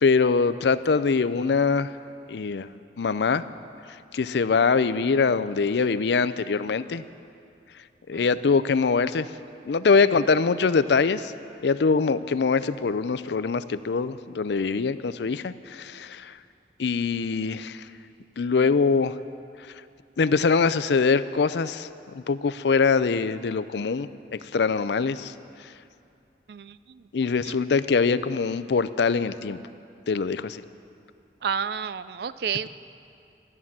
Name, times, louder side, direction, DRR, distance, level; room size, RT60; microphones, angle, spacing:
voice 1, 0.0-1.9 2.3-2.7 3.0-3.4 4.1-7.0 8.1-9.3 9.7-11.3 11.6-16.4 16.8-17.9 18.4-19.1 20.2-21.9 22.1-25.3 27.1-29.6 30.1-30.6, left 5 dB, 75° left, 14 dB, 0.5 m, -23 dB
voice 2, 26.5-27.0 31.4-32.7, right 7 dB, 65° right, 15 dB, 0.4 m, -30 dB
14.0 x 11.0 x 7.3 m, 2.5 s
head